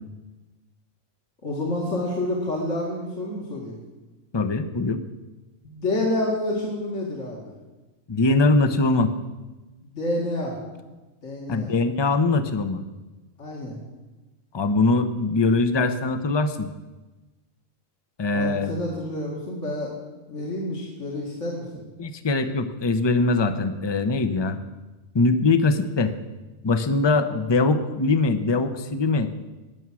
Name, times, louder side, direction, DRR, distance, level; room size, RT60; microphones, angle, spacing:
voice 1, 1.4-3.8 5.6-7.5 9.9-10.6 11.2-11.7 13.4-13.8 18.3-19.9 20.3-21.8, left 1 dB, 65° left, -3 dB, 2.5 m, -28 dB
voice 2, 4.3-5.0 8.1-9.1 11.5-12.8 14.5-16.7 18.2-18.7 22.0-24.6 25.1-26.1 26.6-29.3, left 3 dB, 25° left, 10 dB, 0.6 m, -22 dB
20.0 x 7.2 x 6.2 m, 1.2 s
omnidirectional pair, 1.4 m